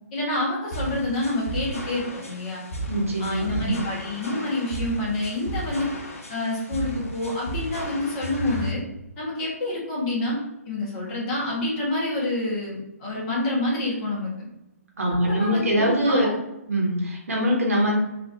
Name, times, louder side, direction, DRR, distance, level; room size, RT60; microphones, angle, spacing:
voice 1, 0.1-2.6 3.2-5.9 6.3-8.8 9.2-10.4 10.6-14.5 15.2-16.3, left 2 dB, 30° left, -5 dB, 1.5 m, -28 dB
sound 1, 0.7-8.7, equal, 60° left, 0.9 m, -34 dB
voice 2, 2.9-3.8 15.0-16.3 16.7-18.0, equal, 60° right, -1 dB, 1.1 m, -23 dB
3.8 x 2.7 x 2.6 m, 0.91 s
figure-of-eight pair, 130°, 8 cm